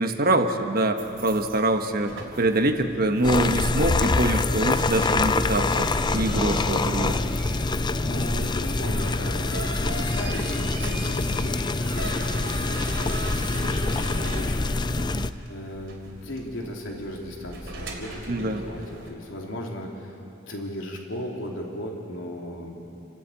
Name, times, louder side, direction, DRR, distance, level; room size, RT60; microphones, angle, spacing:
voice 1, 0.0-2.1 2.4-5.9 6.1-7.2 15.0-15.3 18.3-18.6, right 2 dB, 50° right, 6 dB, 1.2 m, -24 dB
sound 1, 1.0-19.1, right 1 dB, 65° right, 3.1 m, -40 dB
sound 2, 3.2-15.3, left 3 dB, 20° left, 0.4 m, -25 dB
voice 2, 8.0-14.7 15.5-20.2 20.5-22.9, equal, 80° left, 0 dB, 3.1 m, -36 dB
28.5 x 12.5 x 8.6 m, 3.0 s
head